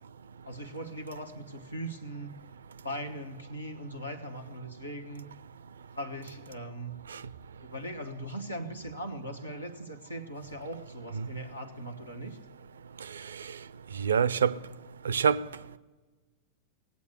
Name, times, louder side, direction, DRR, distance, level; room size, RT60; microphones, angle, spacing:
voice 1, 0.4-2.3 2.8-5.3 5.9-7.0 7.6-12.4, right 1 dB, 85° left, 1.2 m, -40 dB
voice 2, 14.0-14.6 15.0-15.4, right 7 dB, 70° right, 0.4 m, -25 dB
18.5 x 8.4 x 9.5 m
figure-of-eight pair, 90°, 0 cm